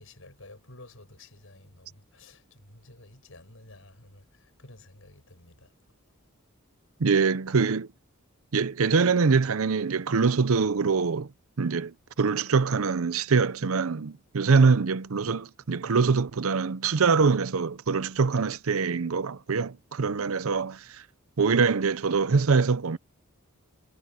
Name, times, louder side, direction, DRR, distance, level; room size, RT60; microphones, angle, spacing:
voice 1, 0.0-5.7, left 2 dB, 65° left, 7.1 m, -51 dB
voice 2, 7.0-7.9 8.5-11.3 11.6-21.0 21.4-23.0, right 5 dB, 75° right, 0.6 m, -24 dB
head